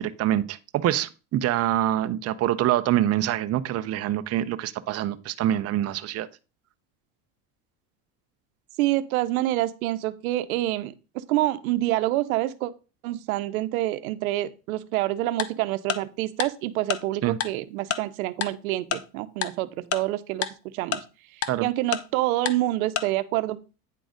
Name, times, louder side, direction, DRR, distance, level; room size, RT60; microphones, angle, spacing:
voice 1, 0.0-6.3 17.2-17.4 21.5-21.7, right 12 dB, 35° right, 0.6 m, -25 dB
voice 2, 8.8-12.7 13.0-21.0 21.3-23.6, right 16 dB, 90° right, 0.8 m, -27 dB
Tick-tock, 15.4-15.5 15.9-16.0 16.4-16.5 16.9-17.0 17.4-17.5 17.9-18.0 18.4-18.5 18.9-19.0 19.4-19.5 19.9-20.0 20.4-20.5 20.9-21.0 21.4-21.5 21.9-22.0 22.5-22.6 23.0-23.1, left 9 dB, 35° left, 0.8 m, -26 dB
9.2 x 3.9 x 5.0 m
supercardioid pair, 110°, 41 cm